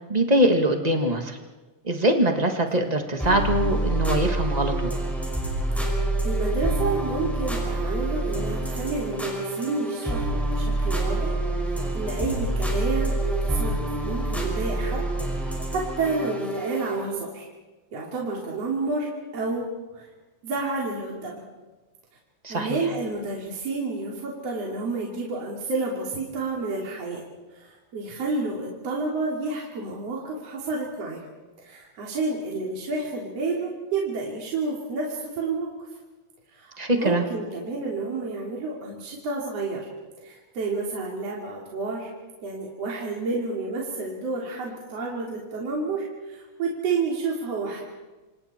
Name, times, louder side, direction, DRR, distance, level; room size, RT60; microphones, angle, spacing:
voice 1, 0.1-1.4 1.8-4.9 22.4-22.8 36.8-37.2, right 1 dB, 25° right, 4 dB, 0.8 m, -23 dB
sound 1, 3.2-17.0, right 1 dB, ahead, 5.3 m, -27 dB
voice 2, 5.9-11.4 11.7-15.0 15.3-17.5 17.9-20.1 20.4-21.4 22.5-27.2 27.5-31.2 31.6-35.7 36.5-39.9 40.2-42.1 42.4-47.8, right 3 dB, 50° right, -3 dB, 3.9 m, -30 dB
28.0 x 27.0 x 4.4 m, 1.2 s
omnidirectional pair, 3.6 m